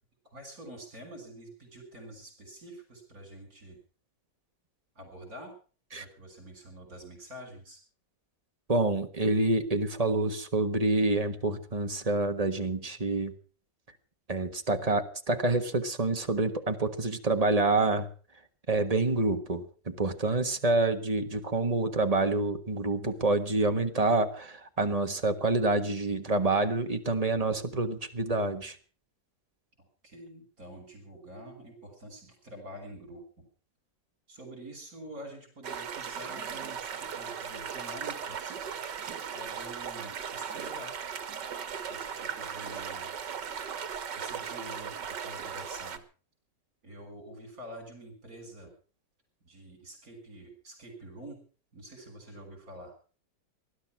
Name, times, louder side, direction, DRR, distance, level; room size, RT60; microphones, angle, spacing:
voice 1, 0.2-3.8 5.0-5.5 5.9-7.8 29.8-33.4 34.3-38.6 39.3-41.0 41.9-43.2 44.1-46.0 46.8-48.7 49.4-51.4 51.7-52.9, right 1 dB, 55° right, 4 dB, 6.9 m, -47 dB
voice 2, 8.7-13.3 14.3-18.1 18.7-28.8, right 2 dB, 25° right, 7 dB, 1.5 m, -27 dB
sound 1, 35.6-46.0, right 7 dB, 80° right, 2.0 m, -37 dB
19.5 x 12.0 x 6.0 m, 0.40 s
omnidirectional pair, 1.9 m